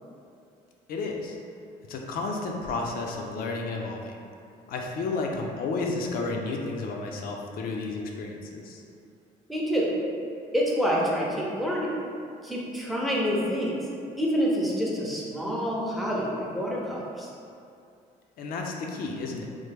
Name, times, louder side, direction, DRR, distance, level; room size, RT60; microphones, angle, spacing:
voice 1, 0.9-1.4 1.9-4.2 4.7-8.8 18.4-19.5, left 3 dB, 60° left, 1 dB, 0.4 m, -32 dB
voice 2, 9.5-9.9 10.5-11.9 12.4-13.7 14.2-17.3, equal, ahead, -5 dB, 0.6 m, -27 dB
3.2 x 2.1 x 3.3 m, 2.4 s
cardioid pair, 110°, 17 cm